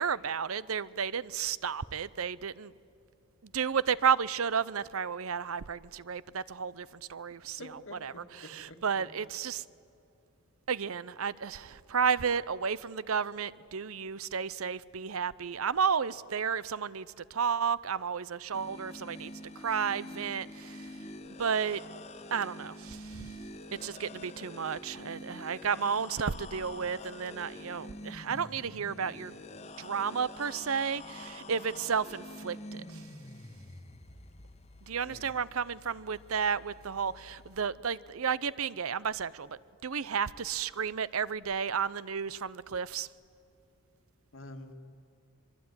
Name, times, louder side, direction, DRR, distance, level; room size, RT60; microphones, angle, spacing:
voice 1, 0.0-2.7 3.4-9.6 10.7-19.3 19.6-21.0 21.4-21.8 22.3-23.3 23.7-29.3 29.8-33.0 34.8-43.1, right 6 dB, 80° right, 0.7 m, -32 dB
voice 2, 7.6-8.8 35.0-35.3 44.3-44.7, left 1 dB, 70° left, 2.1 m, -47 dB
sound 1, 18.5-37.6, left 1 dB, 30° left, 1.3 m, -47 dB
25.0 x 22.5 x 9.7 m
head